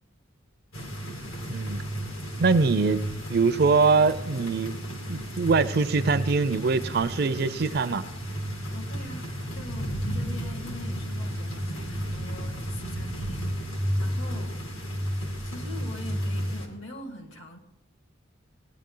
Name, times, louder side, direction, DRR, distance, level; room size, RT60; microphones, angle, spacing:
sound 1, 0.7-16.7, equal, 85° left, 2.1 m, -33 dB
voice 1, 1.5-1.8 2.4-4.8 5.1-8.0, right 4 dB, 50° right, 13 dB, 0.5 m, -23 dB
voice 2, 8.7-13.6 14.0-14.9 15.4-17.6, left 1 dB, 70° left, 4 dB, 1.8 m, -43 dB
17.5 x 9.9 x 3.8 m, 0.85 s
head